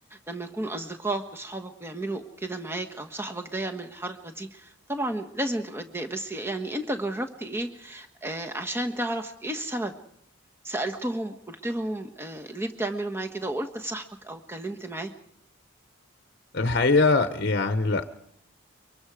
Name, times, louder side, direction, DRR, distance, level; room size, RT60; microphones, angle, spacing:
voice 1, 0.0-9.9 10.6-15.1, right 1 dB, 10° right, 5 dB, 1.4 m, -32 dB
voice 2, 16.5-18.1, left 3 dB, 50° left, 9 dB, 1.0 m, -22 dB
23.5 x 23.5 x 5.0 m, 0.70 s
head